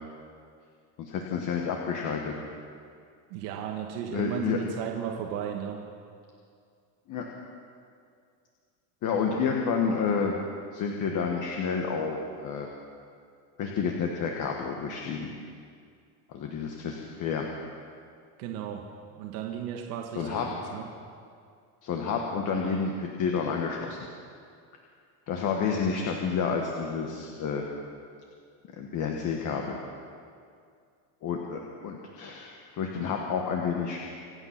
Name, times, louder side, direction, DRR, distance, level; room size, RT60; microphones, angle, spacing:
voice 1, 1.0-2.3 4.1-4.6 7.1-7.3 9.0-10.4 10.7-12.7 13.6-15.3 16.3-17.5 20.1-20.5 21.8-24.0 25.3-27.7 28.8-29.8 31.2-34.0, left 6 dB, 40° left, 1 dB, 1.4 m, -30 dB
voice 2, 3.3-5.8 18.4-18.9 19.1-20.9, right 9 dB, 80° right, 1 dB, 1.8 m, -35 dB
26.0 x 9.0 x 5.9 m, 2.3 s
cardioid pair, 155°, 48 cm